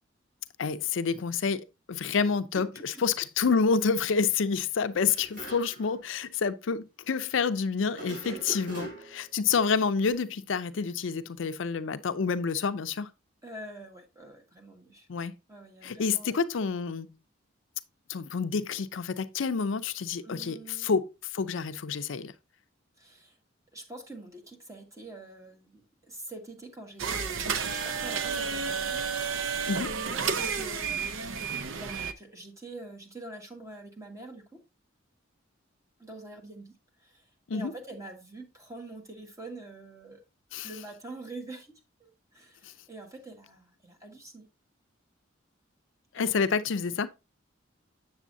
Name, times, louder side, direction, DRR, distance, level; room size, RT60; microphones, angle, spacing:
voice 1, 0.6-13.1 15.1-15.3 15.8-17.1 18.1-21.0 21.3-22.3 29.7-30.0 37.5-37.7 40.5-40.7 42.6-42.7 46.1-47.1, left 5 dB, 70° left, 0.5 m, -28 dB
voice 2, 2.5-3.0 8.1-8.4 10.7-10.9 13.4-15.1 15.5-16.4 20.2-20.9 23.0-23.4 23.7-29.0 30.4-31.2 31.7-34.6 36.0-40.2 40.6-41.7 42.0-44.5 46.1-46.3, right 2 dB, 15° right, 1.6 m, -45 dB
sound 1, 5.0-5.9 6.2-6.3 7.9-9.3, right 3 dB, 45° right, 5.3 m, -42 dB
sound 2, 27.0-32.1, right 6 dB, 85° right, 0.7 m, -31 dB
7.6 x 7.3 x 2.6 m
head